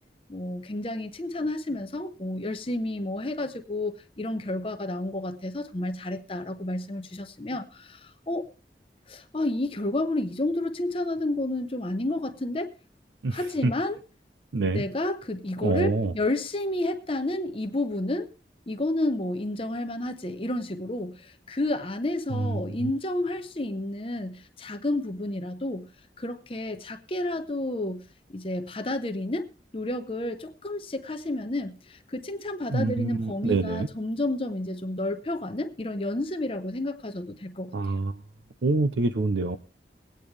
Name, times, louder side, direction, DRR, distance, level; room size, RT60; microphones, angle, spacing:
voice 1, 0.3-8.5 9.1-12.7 13.3-14.0 14.7-18.3 18.7-25.9 26.2-28.0 28.3-29.5 29.7-37.7, left 1 dB, 30° left, 6 dB, 0.8 m, -30 dB
voice 2, 13.2-13.7 14.5-14.8 15.6-16.1 22.3-22.9 32.7-33.9 37.7-38.2 38.6-39.6, right 3 dB, 90° right, 10 dB, 0.6 m, -26 dB
21.5 x 9.0 x 3.3 m, 0.34 s
head